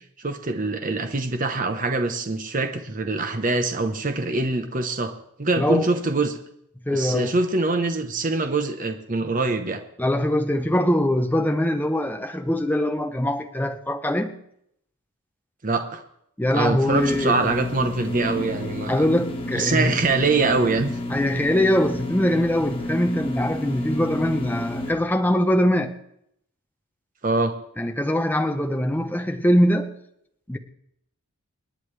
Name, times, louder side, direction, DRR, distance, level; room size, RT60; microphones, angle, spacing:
voice 1, 0.2-5.1 5.4-6.4 6.9-9.8 15.6-16.0 16.5-19.0 19.5-20.9 27.2-27.5, right 3 dB, 40° right, 0.9 m, -24 dB
voice 2, 5.6-5.9 6.9-7.3 10.0-14.4 16.4-17.4 18.9-19.9 21.1-25.9 27.8-29.9 30.5-30.6, left 1 dB, 10° left, 0.7 m, -22 dB
sound 1, 16.9-24.9, left 1 dB, 25° left, 1.8 m, -31 dB
27.5 x 9.3 x 3.3 m
head